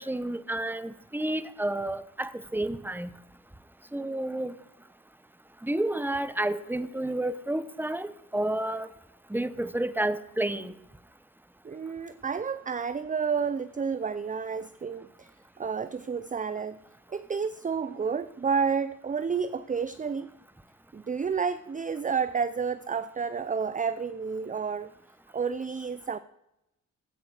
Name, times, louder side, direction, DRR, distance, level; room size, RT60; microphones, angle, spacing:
voice 1, 0.0-3.1 3.9-4.6 5.6-8.9 9.3-10.8, right 1 dB, 5° right, 14 dB, 0.9 m, -30 dB
voice 2, 11.6-15.3 15.6-16.8 17.1-20.3 20.9-24.9 25.3-26.2, right 6 dB, 25° right, 15 dB, 0.5 m, -30 dB
13.5 x 8.5 x 4.9 m, 0.87 s
supercardioid pair, 50°, 34 cm